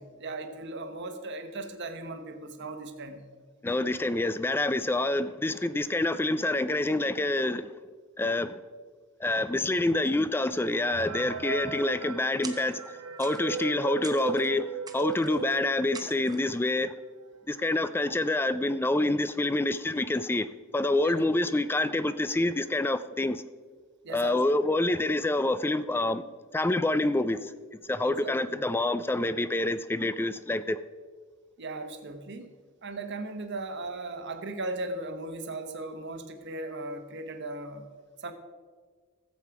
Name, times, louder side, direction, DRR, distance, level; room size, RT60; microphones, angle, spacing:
voice 1, 0.0-3.3 15.2-15.3 21.0-21.2 24.0-24.6 28.0-28.3 31.6-32.5 32.8-37.9 38.2-38.3, right 2 dB, 55° right, 1.1 m, -37 dB
voice 2, 3.6-7.7 8.2-8.6 9.2-16.9 17.5-20.5 20.7-23.4 24.1-26.2 26.5-27.5 27.9-30.8, left 2 dB, 10° left, 0.3 m, -27 dB
sound 1, 10.8-16.2 16.7-16.8 17.0-17.1 17.8-17.9 18.3-18.6, right 6 dB, 80° right, 0.7 m, -37 dB
sound 2, 12.4-12.9 13.2-13.7 14.0-14.5 14.9-15.5 15.9-16.6, right 5 dB, 20° right, 0.7 m, -45 dB
14.5 x 7.5 x 4.7 m
head